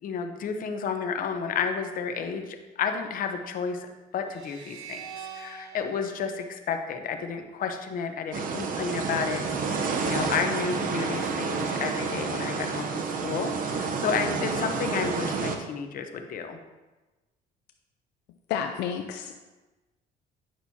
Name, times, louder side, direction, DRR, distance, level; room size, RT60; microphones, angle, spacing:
voice 1, 0.0-16.6, left 6 dB, 55° left, 6 dB, 0.8 m, -31 dB
sound 1, 4.3-7.6, right 7 dB, 90° right, 0.9 m, -45 dB
sound 2, 8.3-15.6, right 4 dB, 55° right, 0.8 m, -29 dB
voice 2, 18.5-19.4, left 8 dB, 85° left, 5 dB, 0.5 m, -30 dB
8.8 x 6.0 x 2.8 m, 1.2 s
cardioid pair, 110°, 17 cm